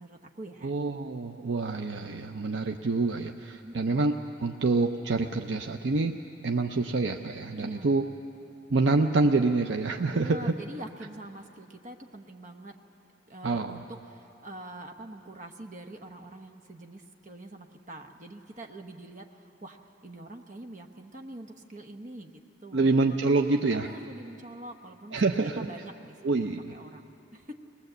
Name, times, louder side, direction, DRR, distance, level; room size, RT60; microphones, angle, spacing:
voice 1, 0.0-0.7 3.6-4.1 7.6-8.1 10.1-12.8 13.3-23.1 23.6-27.5, right 1 dB, 40° right, 4 dB, 1.0 m, -45 dB
voice 2, 0.6-6.2 6.4-8.0 8.7-10.5 13.4-13.8 22.7-23.9 25.1-25.7 26.2-26.7, right 3 dB, 75° right, 5 dB, 0.6 m, -26 dB
20.0 x 20.0 x 7.9 m, 2.9 s
head